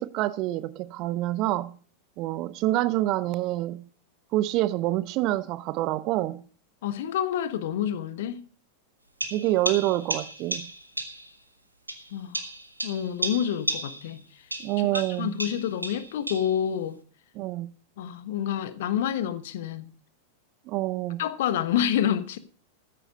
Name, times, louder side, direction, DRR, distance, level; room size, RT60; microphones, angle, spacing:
voice 1, 0.0-1.8 2.2-3.8 4.3-6.4 9.3-10.7 14.6-15.4 17.4-17.7 20.7-21.2, right 16 dB, 40° right, 0.6 m, -27 dB
voice 2, 6.8-8.4 12.1-12.4 12.8-14.2 14.8-17.0 18.0-19.9 21.2-22.4, left 10 dB, 55° left, 1.2 m, -28 dB
sound 1, 9.2-11.3 11.9-14.2 14.5-16.6, right 1 dB, 85° right, 1.7 m, -33 dB
14.0 x 9.9 x 5.2 m
figure-of-eight pair, 90°, 0 cm